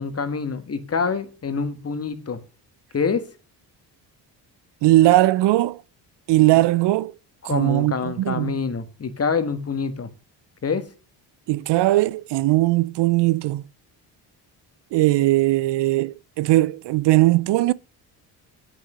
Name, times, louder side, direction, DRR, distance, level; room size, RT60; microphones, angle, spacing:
voice 1, 0.0-2.4 2.9-3.2 7.5-10.1 10.6-10.8, left 5 dB, 30° left, 1.5 m, -26 dB
voice 2, 4.8-5.8 6.3-7.2 7.4-8.5 11.5-13.6 14.9-17.7, right 17 dB, 65° right, 0.5 m, -19 dB
8.4 x 6.3 x 6.7 m
cardioid pair, 90°, 45 cm